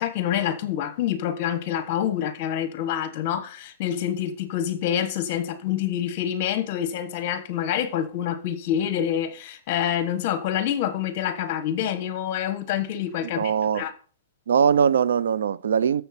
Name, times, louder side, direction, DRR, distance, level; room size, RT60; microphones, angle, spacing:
voice 1, 0.0-13.9, left 10 dB, 35° left, 1.2 m, -27 dB
voice 2, 13.2-13.8 14.5-16.0, right 7 dB, 85° right, 0.6 m, -21 dB
13.0 x 7.0 x 4.3 m
hypercardioid pair, 175°, 0 cm